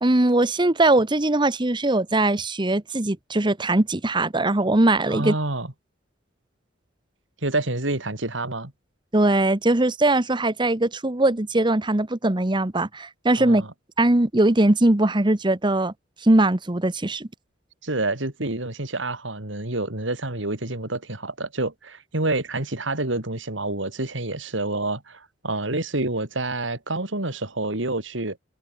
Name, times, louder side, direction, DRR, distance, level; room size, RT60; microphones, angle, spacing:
voice 1, 0.0-5.3 9.1-13.7 14.0-15.9 16.2-17.3, right 2 dB, 25° right, 1.0 m, -20 dB
voice 2, 5.1-5.7 7.4-8.7 13.4-13.7 17.8-28.4, right 2 dB, 75° right, 3.2 m, -28 dB
head